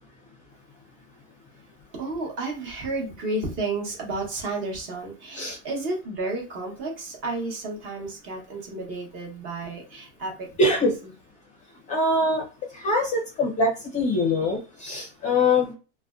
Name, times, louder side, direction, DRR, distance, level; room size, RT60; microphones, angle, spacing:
voice 1, 1.9-10.8, right 2 dB, 35° right, -1 dB, 1.0 m, -32 dB
voice 2, 10.6-10.9 11.9-12.4 12.7-15.7, left 2 dB, 20° left, 0 dB, 0.5 m, -23 dB
2.5 x 2.1 x 2.3 m, 0.33 s
supercardioid pair, 150°, 36 cm